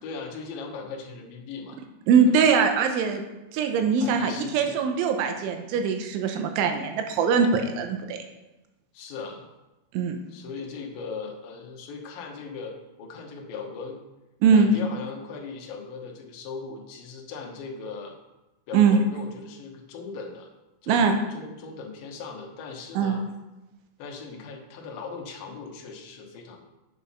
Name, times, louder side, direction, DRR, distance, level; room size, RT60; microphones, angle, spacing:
voice 1, 0.0-1.8 2.3-2.5 4.0-4.8 8.9-9.5 10.3-14.0 14.5-18.2 18.7-20.5 20.8-23.2 24.0-26.6, left 4 dB, 70° left, 1 dB, 2.4 m, -38 dB
voice 2, 2.1-3.2 3.5-8.2 9.9-10.2 14.4-14.7 18.7-19.0 20.9-21.2 23.0-23.2, right 6 dB, 85° right, 5 dB, 3.1 m, -22 dB
8.2 x 6.8 x 5.6 m, 1.0 s
omnidirectional pair, 5.6 m